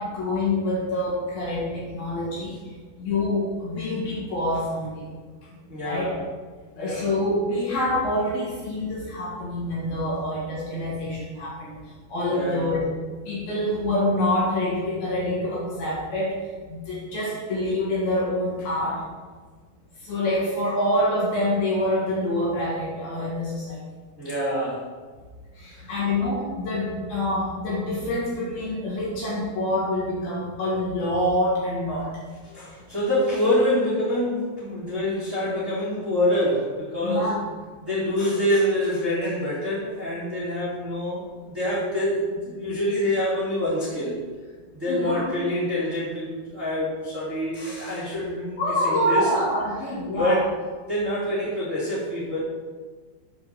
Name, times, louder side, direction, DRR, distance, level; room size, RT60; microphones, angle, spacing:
voice 1, 0.0-2.6 3.0-5.1 5.5-6.1 6.8-11.8 12.1-12.9 13.3-16.4 16.7-19.0 20.0-23.8 25.6-32.2 32.8-32.9 37.0-37.4 44.9-45.3 48.6-50.4, left 1 dB, 60° left, -6 dB, 3.3 m, -26 dB
voice 2, 5.7-6.1 6.7-7.1 12.3-12.7 24.2-24.8 25.7-25.9 32.4-37.3 37.8-44.2 44.8-49.3 50.2-50.5 50.9-52.4, left 1 dB, 25° right, -11 dB, 1.9 m, -26 dB
7.7 x 4.8 x 6.7 m, 1.4 s
omnidirectional pair, 5.4 m